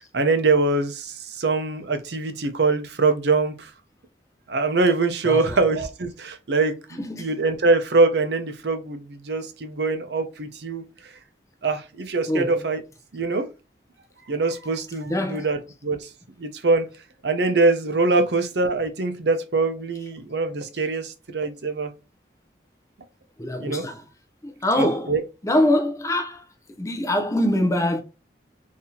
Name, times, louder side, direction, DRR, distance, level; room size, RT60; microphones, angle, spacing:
voice 1, 0.1-3.7 4.5-10.8 11.6-12.8 13.1-13.5 14.3-16.1 16.4-16.9 17.2-21.9 23.6-23.8 24.8-25.2, right 3 dB, 70° right, 0.6 m, -23 dB
voice 2, 5.2-5.6 7.1-7.3 12.3-12.6 15.1-15.5 23.4-24.0 24.4-25.1 25.4-26.4 26.8-28.0, left 1 dB, 15° left, 0.5 m, -23 dB
3.9 x 2.7 x 2.7 m
head